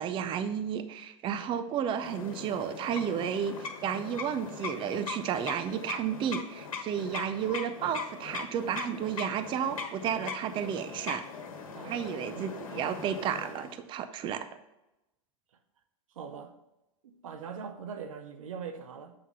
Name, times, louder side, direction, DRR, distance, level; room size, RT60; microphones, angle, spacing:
voice 1, 0.0-11.2 11.8-14.5, right 8 dB, 30° right, 0.5 m, -32 dB
sound 1, 1.9-13.8, left 5 dB, 80° left, 1.2 m, -40 dB
voice 2, 11.7-12.0 12.3-12.5 16.1-16.5 17.0-19.1, right 6 dB, 80° right, 0.7 m, -42 dB
7.8 x 3.6 x 5.4 m
hypercardioid pair, 110°, 17 cm